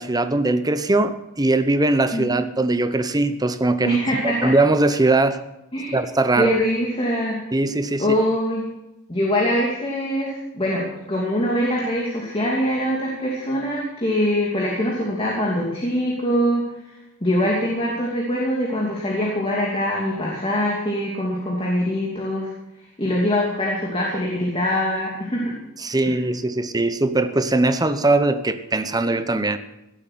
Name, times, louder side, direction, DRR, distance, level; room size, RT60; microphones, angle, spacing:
voice 1, 0.0-4.0 4.2-5.4 5.9-6.5 7.5-8.1 25.8-29.6, right 2 dB, 20° right, 11 dB, 0.9 m, -20 dB
voice 2, 2.1-2.4 3.8-4.5 5.7-6.0 6.3-7.4 8.0-8.6 9.1-16.6 17.2-22.5 23.0-25.5 26.0-26.2, equal, 25° left, -3 dB, 2.7 m, -23 dB
17.0 x 8.4 x 7.6 m, 0.92 s
head